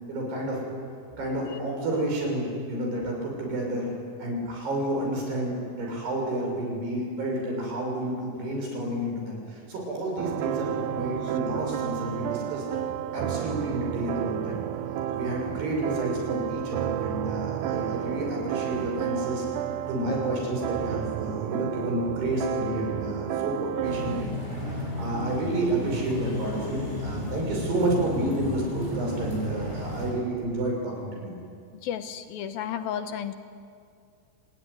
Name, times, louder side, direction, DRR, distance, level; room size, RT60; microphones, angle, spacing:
voice 1, 0.1-0.6 1.2-12.6 13.1-14.6 15.1-19.5 19.9-24.3 24.7-31.3, right 1 dB, 65° right, 0 dB, 8.1 m, -30 dB
sound 1, 10.2-24.2, right 11 dB, 90° right, 1.8 m, -31 dB
sound 2, 23.8-30.1, left 1 dB, 15° right, 7.3 m, -32 dB
voice 2, 31.7-33.3, left 9 dB, 75° left, 9 dB, 2.3 m, -32 dB
27.0 x 20.5 x 9.8 m, 2.3 s
omnidirectional pair, 5.1 m